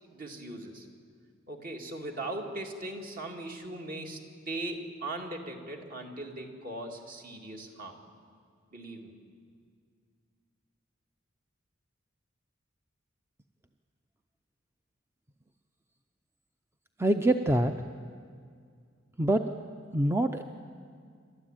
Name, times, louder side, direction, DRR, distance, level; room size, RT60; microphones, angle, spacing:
voice 1, 0.0-0.9 1.5-4.2 4.5-7.9 8.7-9.1, right 2 dB, 45° right, 2 dB, 2.4 m, -39 dB
voice 2, 17.0-17.7 19.2-19.4 19.9-20.4, right 1 dB, 15° right, 7 dB, 0.6 m, -24 dB
28.0 x 13.0 x 9.0 m, 2.2 s
head